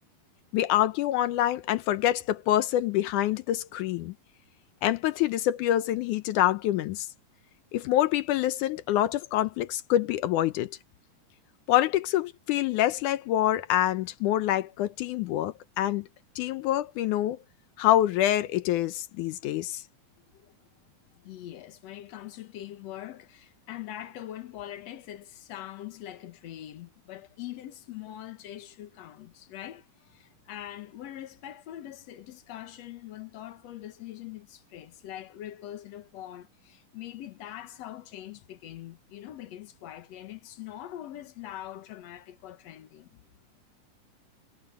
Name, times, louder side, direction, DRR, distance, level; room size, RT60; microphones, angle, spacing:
voice 1, 0.5-4.1 4.8-7.1 7.7-10.8 11.7-16.1 16.4-17.4 17.8-19.8, left 13 dB, 75° left, 2.0 m, -26 dB
voice 2, 20.2-20.5 21.1-43.1, left 12 dB, 60° left, 1.9 m, -43 dB
omnidirectional pair, 4.1 m